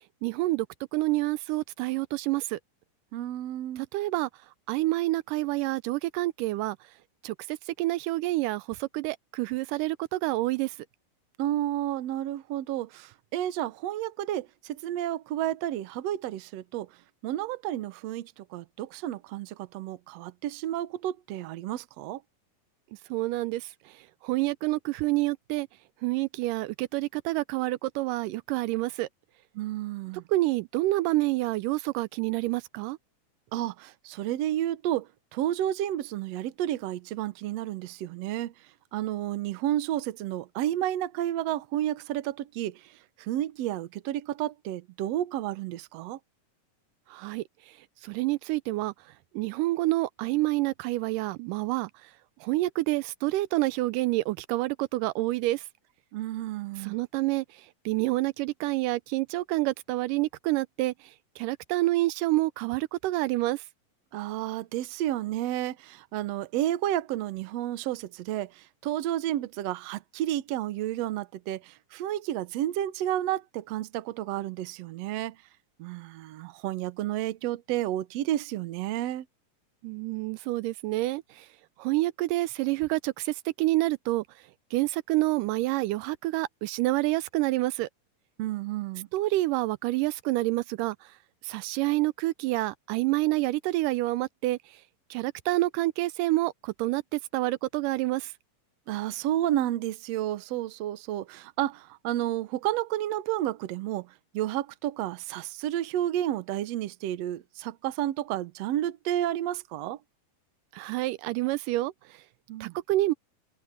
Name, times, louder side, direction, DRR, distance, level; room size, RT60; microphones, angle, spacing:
voice 1, 0.2-0.7 0.9-2.6 3.9-4.3 4.7-6.8 7.2-10.8 23.1-25.7 26.0-29.1 30.3-33.0 47.1-47.4 48.0-48.9 49.3-52.1 52.4-55.6 56.8-60.9 61.4-63.6 79.8-81.5 81.8-84.2 84.7-87.9 89.1-91.1 91.4-94.6 95.1-98.3 110.7-112.2 112.6-113.1, right 19 dB, 85° right, 2.1 m, -28 dB
voice 2, 3.1-3.8 11.4-16.9 17.2-22.2 29.6-30.2 33.5-38.5 38.9-46.2 56.1-57.0 64.1-75.4 75.8-79.3 88.4-89.1 98.9-110.0 112.5-112.7, right 13 dB, 65° right, 1.7 m, -31 dB
omnidirectional pair, 3.8 m